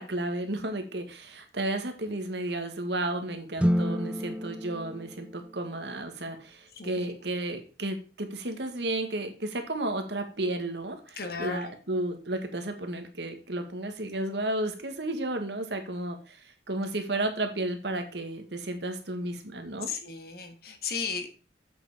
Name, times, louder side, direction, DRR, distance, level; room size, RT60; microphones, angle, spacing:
voice 1, 0.0-16.4 16.7-19.9, right 1 dB, 70° right, 6 dB, 1.7 m, -33 dB
sound 1, 3.6-6.0, equal, 5° right, 0.4 m, -30 dB
voice 2, 6.7-7.1 11.2-11.7 19.9-21.3, left 5 dB, 55° left, 7 dB, 1.6 m, -35 dB
7.9 x 6.8 x 4.9 m, 0.35 s
head